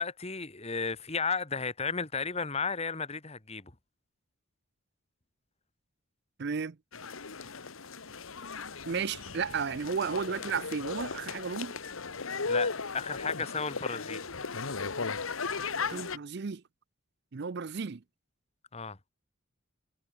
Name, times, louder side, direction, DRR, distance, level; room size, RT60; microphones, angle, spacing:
voice 1, 0.0-3.7 12.4-14.2 18.7-19.0, left 5 dB, 30° left, 1.7 m, -33 dB
voice 2, 6.4-6.8 8.9-11.7 15.9-16.6 17.3-18.0, right 5 dB, 50° right, 0.5 m, -33 dB
sound 1, 6.9-16.2, left 4 dB, 80° left, 1.5 m, -36 dB
head